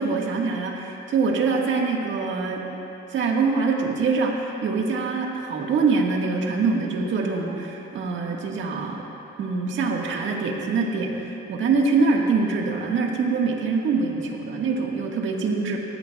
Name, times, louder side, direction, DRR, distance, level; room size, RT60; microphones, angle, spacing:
voice 1, 0.0-2.6 3.1-9.0 9.4-15.8, right 4 dB, 70° right, 0 dB, 1.7 m, -24 dB
19.0 x 13.5 x 2.4 m, 2.9 s
cardioid pair, 90°, 20 cm